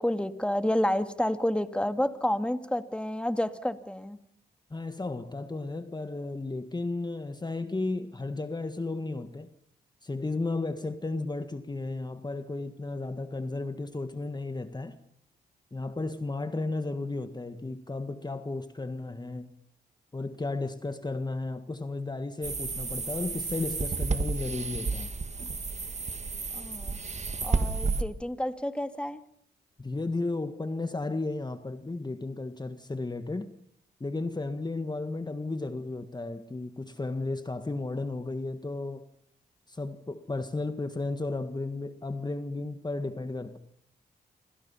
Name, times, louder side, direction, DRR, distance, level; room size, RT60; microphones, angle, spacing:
voice 1, 0.0-4.2 26.5-27.0 27.4-29.2, left 1 dB, 5° left, 2.2 m, -29 dB
voice 2, 4.7-9.5 10.0-15.0 15.7-19.5 20.1-25.1 29.8-33.5 34.0-39.1 39.7-43.6, left 2 dB, 25° left, 1.7 m, -34 dB
sound 1, 22.4-28.0, right 4 dB, 40° right, 2.0 m, -31 dB
27.5 x 26.0 x 5.7 m
cardioid pair, 60°, 18 cm